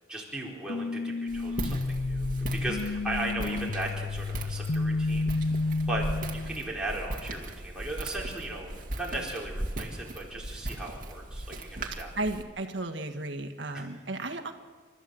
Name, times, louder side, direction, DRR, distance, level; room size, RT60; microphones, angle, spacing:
voice 1, 0.1-5.3 5.9-12.1 13.7-13.8, right 1 dB, 5° right, -4 dB, 4.3 m, -37 dB
sound 1, 0.7-6.6, left 3 dB, 75° left, 0.7 m, -31 dB
Walk footsteps, 1.3-12.4, right 1 dB, 45° right, 2.2 m, -38 dB
voice 2, 12.2-14.5, right 2 dB, 75° right, 5 dB, 1.6 m, -34 dB
30.0 x 13.5 x 7.8 m, 1.5 s
head